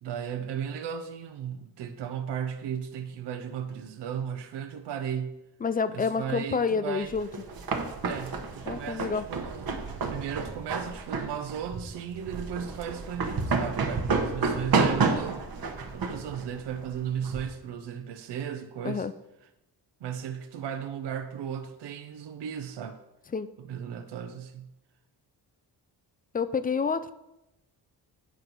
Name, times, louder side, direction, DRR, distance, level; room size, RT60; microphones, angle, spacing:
voice 1, 0.0-5.3 5.9-7.1 8.0-15.4 15.9-19.1 20.0-23.0 23.6-24.7, right 8 dB, 70° right, 8 dB, 0.7 m, -36 dB
voice 2, 5.6-7.3 8.7-9.2 18.8-19.1 23.3-23.5 26.3-27.1, left 5 dB, 25° left, 14 dB, 0.3 m, -28 dB
sound 1, 7.1-17.5, right 4 dB, 55° right, 1.1 m, -30 dB
9.3 x 4.5 x 4.0 m, 0.91 s
cardioid pair, 80°, 43 cm